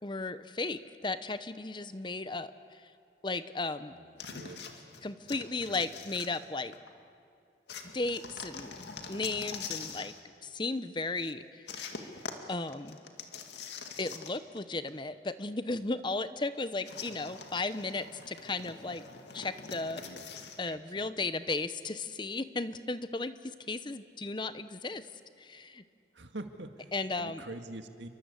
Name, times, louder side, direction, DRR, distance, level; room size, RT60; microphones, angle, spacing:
voice 1, 0.0-2.9 3.2-3.9 5.0-6.7 7.9-8.8 9.1-10.1 10.4-11.9 12.5-13.0 14.0-19.0 19.3-20.0 20.6-25.1 25.4-25.8 26.9-27.4, left 3 dB, 25° left, 12 dB, 0.8 m, -35 dB
voice 2, 3.9-4.9 11.2-11.3 20.0-20.3 20.6-21.2 26.1-28.1, right 2 dB, 90° right, 6 dB, 1.9 m, -46 dB
sound 1, 4.2-6.9 7.7-10.2 11.7-14.6 14.9-15.0 16.8-20.6, left 5 dB, 75° left, 2.1 m, -44 dB
29.0 x 23.5 x 8.3 m, 2.4 s
head